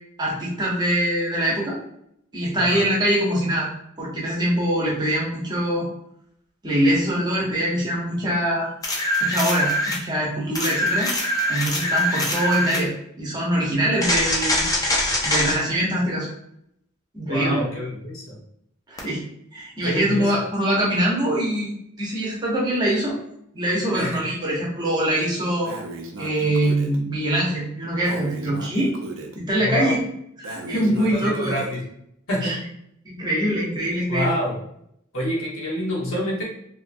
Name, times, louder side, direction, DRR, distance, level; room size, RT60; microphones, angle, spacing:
voice 1, 0.2-1.8 2.3-3.7 4.0-5.8 6.6-8.7 9.2-11.1 11.5-12.9 13.2-14.6 15.2-16.3 17.1-17.6 18.9-19.2 19.5-23.2 23.5-25.7 26.2-28.9 29.3-30.0 30.4-31.5 32.4-32.6 33.0-34.3, right 1 dB, 20° right, -5 dB, 0.8 m, -23 dB
sound 1, 8.8-10.0 10.6-12.9 14.0-15.6 19.0-19.1, equal, 15° left, 0.5 m, -23 dB
voice 2, 17.3-18.4 19.8-20.4 23.9-24.3 29.6-30.0 30.9-31.8 32.3-32.6 34.1-34.6 35.1-36.4, equal, 80° left, -3 dB, 1.0 m, -27 dB
Breathing, 25.6-27.0 28.0-29.4 30.4-31.8, right 2 dB, 65° right, 0.4 m, -36 dB
2.8 x 2.4 x 2.5 m, 0.73 s
head